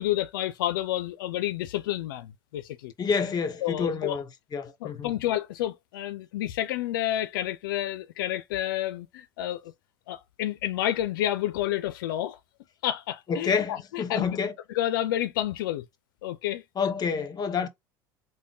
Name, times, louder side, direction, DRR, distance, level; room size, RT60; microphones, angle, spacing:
voice 1, 0.0-2.9 3.6-4.2 4.8-9.7 10.1-12.4 12.8-14.4 14.7-15.8 16.2-16.6, left 13 dB, 85° left, 0.4 m, -30 dB
voice 2, 3.0-5.1 13.3-14.5 16.8-17.7, left 5 dB, 35° left, 0.9 m, -28 dB
3.5 x 2.2 x 3.8 m
hypercardioid pair, 85°, 11 cm